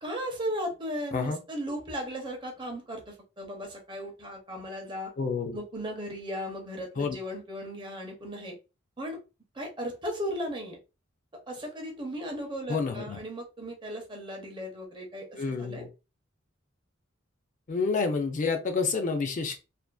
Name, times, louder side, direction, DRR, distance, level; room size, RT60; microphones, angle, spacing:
voice 1, 0.0-5.1 5.5-8.6 9.0-9.2 9.5-10.8 11.5-15.9, equal, 25° right, 3 dB, 0.6 m, -36 dB
voice 2, 5.2-5.6 7.0-7.2 12.7-13.2 15.4-15.9 17.7-19.6, left 4 dB, 40° left, 4 dB, 0.4 m, -29 dB
2.5 x 2.4 x 2.2 m, 0.29 s
head